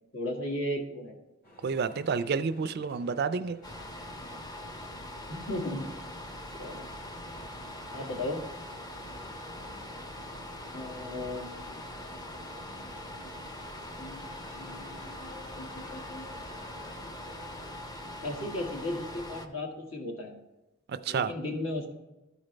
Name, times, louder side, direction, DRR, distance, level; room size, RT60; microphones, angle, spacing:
voice 1, 0.1-1.2 4.2-4.4 5.3-5.9 6.6-6.9 7.9-8.4 10.7-11.5 14.0-14.3 14.5-15.2 15.6-16.3 18.2-20.4 21.1-21.9, left 1 dB, 70° left, 0 dB, 1.8 m, -36 dB
sound 1, 1.4-17.8, left 1 dB, 50° left, 2.1 m, -52 dB
voice 2, 1.6-3.6 20.9-21.3, right 5 dB, 50° right, 13 dB, 0.4 m, -30 dB
sound 2, 3.6-19.5, left 1 dB, 20° left, 0.6 m, -42 dB
13.5 x 5.0 x 3.2 m, 1.0 s
head